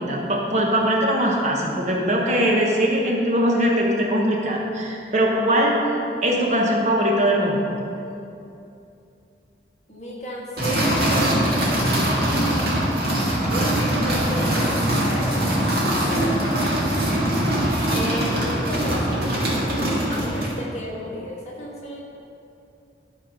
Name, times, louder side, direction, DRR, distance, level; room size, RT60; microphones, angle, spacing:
voice 1, 0.0-5.8 6.2-7.7, equal, 40° right, -1 dB, 1.1 m, -21 dB
voice 2, 9.9-12.6 13.5-17.1 17.9-22.0, equal, 40° left, -4 dB, 1.6 m, -34 dB
sound 1, 10.6-20.6, right 1 dB, 60° right, 2.0 m, -22 dB
12.0 x 4.3 x 5.2 m, 2.7 s
head